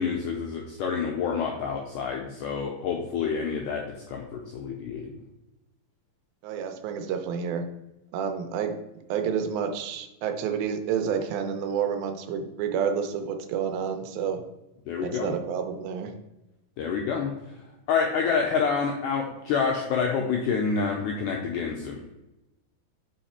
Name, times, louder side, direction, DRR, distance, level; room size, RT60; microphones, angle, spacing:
voice 1, 0.0-3.8 4.1-5.1 14.9-15.3 16.8-17.3 17.9-22.0, left 5 dB, 85° left, 1 dB, 1.8 m, -28 dB
voice 2, 6.4-7.6 8.1-8.7 9.1-14.4 15.0-16.1, right 7 dB, 80° right, 6 dB, 2.3 m, -29 dB
5.8 x 4.9 x 4.2 m, 0.96 s
omnidirectional pair, 4.3 m